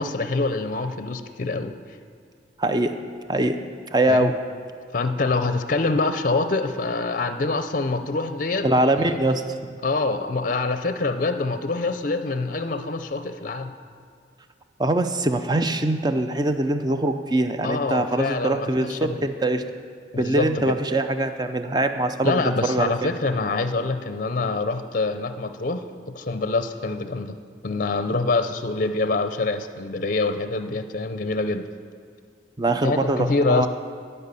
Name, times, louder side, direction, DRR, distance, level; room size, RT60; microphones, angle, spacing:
voice 1, 0.0-1.7 4.1-4.3 4.9-8.7 8.9-9.2 9.8-13.7 17.6-19.3 20.1-20.8 22.2-27.4 27.6-31.7 32.8-33.7, left 3 dB, 45° left, 9 dB, 0.5 m, -25 dB
voice 2, 2.6-3.0 3.3-3.6 3.9-4.3 8.6-9.8 14.8-19.6 20.2-23.1 32.6-33.7, right 1 dB, 25° right, 8 dB, 0.5 m, -23 dB
12.5 x 5.5 x 8.2 m, 2.1 s
head